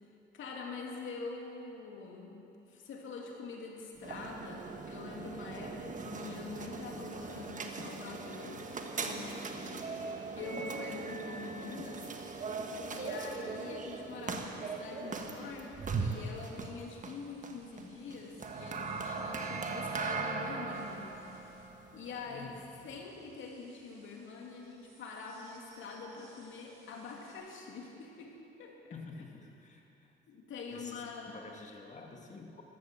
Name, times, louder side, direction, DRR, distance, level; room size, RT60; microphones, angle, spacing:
voice 1, 0.3-2.4 2.7-8.7 9.0-9.9 10.4-12.1 12.9-21.1 21.9-22.5 22.8-28.3 28.6-28.9 30.3-31.5, left 4 dB, 75° left, 0 dB, 2.6 m, -45 dB
sound 1, 4.0-23.0, right 4 dB, 40° right, 1.4 m, -39 dB
sound 2, 15.1-20.1 20.7-27.3, right 2 dB, 85° right, 4.8 m, -64 dB
voice 2, 22.3-22.6 28.9-30.1 30.7-32.6, left 4 dB, 35° left, 1 dB, 2.1 m, -49 dB
14.0 x 12.5 x 7.5 m, 2.8 s
cardioid pair, 90°, 20 cm